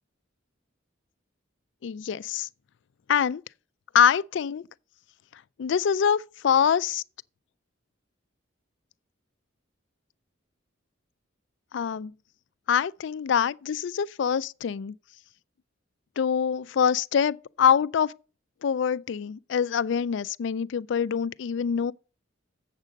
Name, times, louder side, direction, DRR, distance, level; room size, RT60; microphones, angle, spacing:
voice 1, 1.8-2.5 3.1-3.4 3.9-4.6 5.6-7.0 11.7-12.1 12.7-14.9 16.2-18.1 18.6-21.9, left 7 dB, 60° left, 0.3 m, -24 dB
7.4 x 7.4 x 5.1 m
head